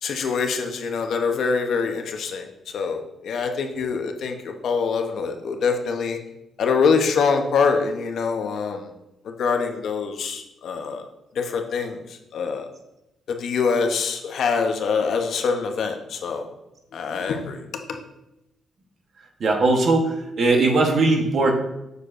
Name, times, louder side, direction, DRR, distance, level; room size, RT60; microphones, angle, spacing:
voice 1, 0.0-6.2 6.6-8.9 9.2-11.1 11.3-12.7 13.3-16.5 16.9-18.0, left 5 dB, 60° left, 4 dB, 0.7 m, -24 dB
voice 2, 19.4-21.5, right 2 dB, 50° right, 2 dB, 1.0 m, -19 dB
6.5 x 6.5 x 2.5 m, 0.90 s
cardioid pair, 150°, 0 cm